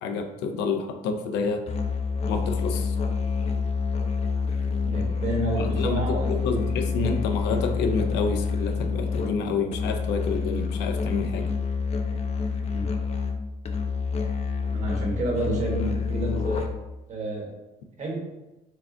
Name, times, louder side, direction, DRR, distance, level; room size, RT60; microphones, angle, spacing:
voice 1, 0.0-1.6 2.3-3.0 5.6-11.5, left 4 dB, 85° left, 5 dB, 0.5 m, -28 dB
Musical instrument, 1.7-17.0, left 5 dB, 40° left, 0.5 m, -27 dB
voice 2, 4.8-6.8 12.7-12.9 14.7-16.7 17.1-17.5 18.0-18.2, right 1 dB, 45° right, -1 dB, 1.2 m, -30 dB
4.6 x 2.4 x 3.7 m, 1.0 s
cardioid pair, 110°, 17 cm